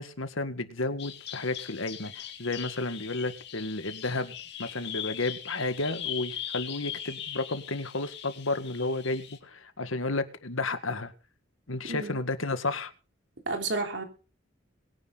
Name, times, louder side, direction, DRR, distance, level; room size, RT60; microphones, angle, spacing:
voice 1, 0.0-11.1 11.7-12.9, left 2 dB, 90° left, 10 dB, 1.9 m, -32 dB
Bird vocalization bird call bird song, 1.0-9.4, left 10 dB, 55° left, 2.5 m, -40 dB
voice 2, 13.5-14.0, right 3 dB, 60° right, 5 dB, 3.6 m, -31 dB
22.5 x 9.8 x 4.1 m, 0.35 s
head